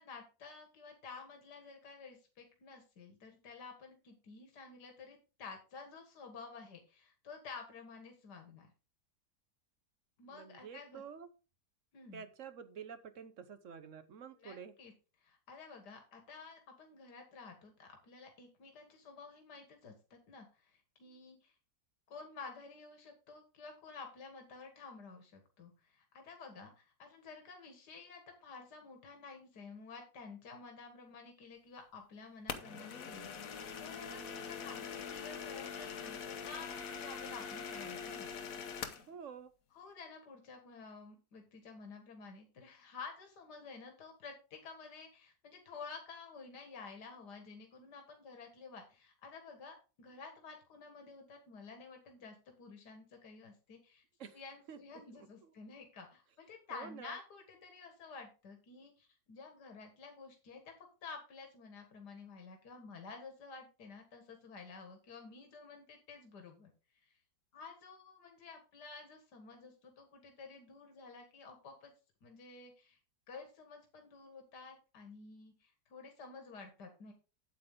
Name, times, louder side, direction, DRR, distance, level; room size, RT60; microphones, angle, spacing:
voice 1, 0.0-8.7 10.2-11.0 11.9-12.2 14.4-14.9 15.2-21.5 22.1-38.3 39.7-54.0 54.3-60.7 61.0-66.7 67.0-67.2 67.5-71.9 72.2-73.0 73.3-77.1, left 4 dB, 75° left, 4 dB, 2.2 m, -51 dB
voice 2, 10.3-11.3 12.1-14.7 39.1-39.5 54.2-54.4 54.7-54.8 55.1-55.5 56.7-57.2, right 7 dB, 55° right, 12 dB, 1.1 m, -49 dB
sound 1, 32.5-39.1, left 6 dB, 60° left, 1.3 m, -43 dB
8.7 x 8.4 x 3.7 m, 0.32 s
omnidirectional pair, 1.8 m